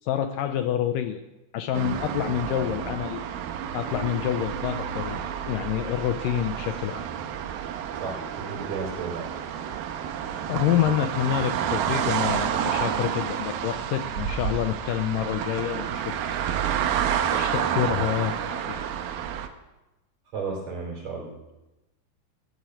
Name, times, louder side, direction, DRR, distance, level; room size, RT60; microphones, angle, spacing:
voice 1, 0.0-1.2 1.5-3.2 3.7-7.1 10.5-16.2 17.3-18.8, left 11 dB, 75° left, 8 dB, 2.1 m, -27 dB
sound 1, 1.7-19.5, right 9 dB, 80° right, 2.7 m, -29 dB
voice 2, 8.0-9.3 20.3-21.3, right 4 dB, 45° right, -1 dB, 4.9 m, -33 dB
15.0 x 8.1 x 9.1 m, 1.0 s
omnidirectional pair, 4.3 m